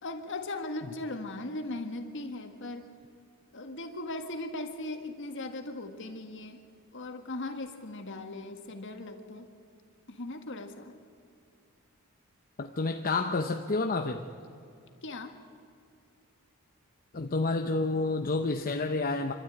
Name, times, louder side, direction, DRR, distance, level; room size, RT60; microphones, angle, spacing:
voice 1, 0.0-2.9 3.5-6.6 6.9-9.5 10.1-10.9 15.0-15.4, left 2 dB, 60° left, 5 dB, 1.7 m, -38 dB
voice 2, 12.6-14.2 17.1-19.3, left 3 dB, 40° left, 4 dB, 0.8 m, -29 dB
26.0 x 12.5 x 9.1 m, 2.4 s
head